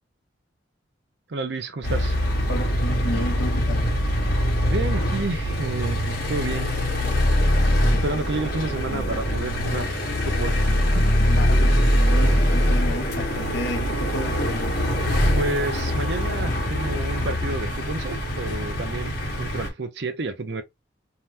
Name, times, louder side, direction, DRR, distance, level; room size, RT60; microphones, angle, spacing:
voice 1, 1.3-2.2 4.7-6.7 8.0-10.6 10.9-11.1 15.3-20.6, right 2 dB, 60° right, 0.6 m, -30 dB
sound 1, 1.8-19.7, equal, 50° left, 1.0 m, -23 dB
voice 2, 2.5-3.9 11.4-14.5, left 1 dB, 75° left, 0.8 m, -32 dB
2.8 x 2.2 x 3.3 m
head